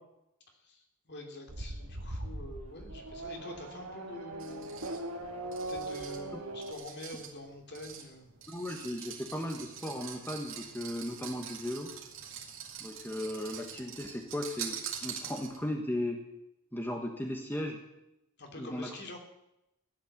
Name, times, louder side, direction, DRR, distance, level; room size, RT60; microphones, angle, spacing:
voice 1, 0.5-4.7 5.7-8.3 18.4-19.2, left 1 dB, 50° left, 3 dB, 3.0 m, -46 dB
Race car auto racing / Accelerating revving vroom, 1.5-6.7, right 1 dB, 90° right, 1.8 m, -40 dB
sound 1, 4.4-15.8, right 8 dB, 65° right, 2.8 m, -45 dB
voice 2, 8.5-11.9 12.8-16.2 16.7-17.8 18.6-18.9, left 1 dB, 10° left, 2 dB, 1.4 m, -36 dB
15.5 x 12.0 x 7.3 m, 0.87 s
head